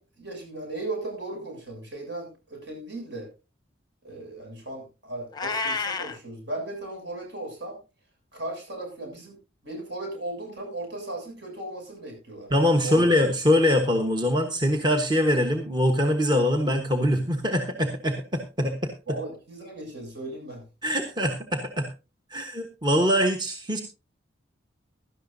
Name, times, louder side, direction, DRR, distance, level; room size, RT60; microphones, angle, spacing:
voice 1, 0.0-3.3 4.0-7.8 8.3-9.4 9.6-12.5 12.8-13.1 19.1-20.7, right 2 dB, 65° right, 3 dB, 7.4 m, -36 dB
Meow, 5.3-6.2, left 4 dB, 20° left, 0.8 m, -29 dB
voice 2, 12.5-18.9 20.8-21.9 22.3-23.8, left 1 dB, 20° right, 4 dB, 1.2 m, -23 dB
17.0 x 12.5 x 2.7 m, 0.30 s
head